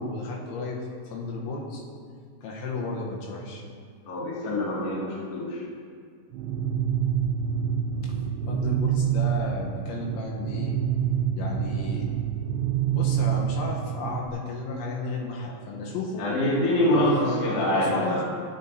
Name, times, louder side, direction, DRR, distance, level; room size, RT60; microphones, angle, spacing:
voice 1, 0.0-1.8 2.4-3.6 8.0-8.2 8.5-10.7 11.4-12.1 12.9-16.3 16.8-18.2, left 3 dB, 80° left, -2 dB, 3.2 m, -33 dB
voice 2, 4.1-5.6 15.7-15.9 16.2-18.2, left 1 dB, 45° left, -6 dB, 2.2 m, -25 dB
sound 1, 6.3-14.3, right 9 dB, 85° right, 2.8 m, -27 dB
16.0 x 8.1 x 2.7 m, 2.1 s
omnidirectional pair, 5.6 m